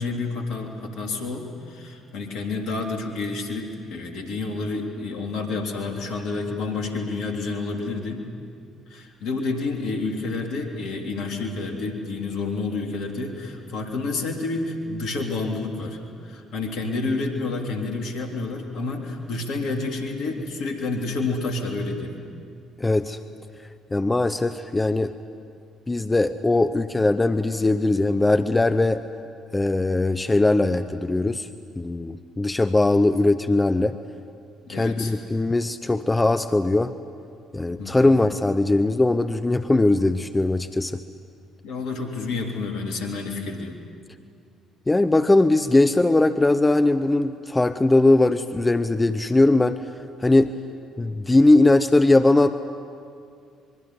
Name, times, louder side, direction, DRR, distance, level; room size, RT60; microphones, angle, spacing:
voice 1, 0.0-8.2 8.9-22.2 34.7-35.2 37.8-38.1 41.6-43.8, left 3 dB, 65° left, 3 dB, 3.3 m, -29 dB
voice 2, 22.8-23.2 23.9-25.1 25.9-29.0 29.5-31.5 31.8-34.0 34.7-36.9 37.5-41.0 44.9-49.8 50.2-50.5 51.0-52.5, left 2 dB, 20° left, 11 dB, 0.9 m, -20 dB
25.5 x 22.5 x 9.7 m, 2.4 s
hypercardioid pair, 50°, 0 cm